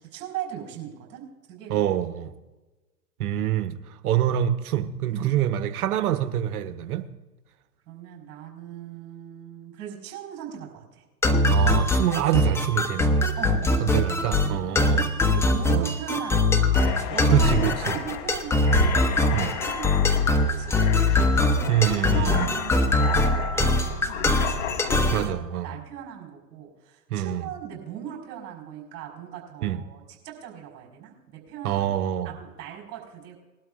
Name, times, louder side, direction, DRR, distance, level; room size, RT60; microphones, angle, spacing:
voice 1, 0.0-1.9 5.1-5.4 7.9-11.0 13.3-14.0 14.4-14.8 15.2-21.3 21.5-24.7 25.1-25.4 25.6-31.9 32.2-33.4, right 9 dB, 40° right, 5.2 m, -39 dB
voice 2, 1.7-2.3 3.2-7.1 11.5-13.2 13.8-15.1 15.7-15.9 17.3-18.0 19.3-19.6 21.7-22.5 25.1-25.8 27.1-27.5 29.6-29.8 31.6-32.3, right 11 dB, 60° right, 1.2 m, -26 dB
sound 1, 11.2-25.3, left 2 dB, 5° left, 0.9 m, -22 dB
sound 2, 16.7-25.2, left 10 dB, 40° left, 0.9 m, -34 dB
21.0 x 12.0 x 2.5 m
hypercardioid pair, 105°, 49 cm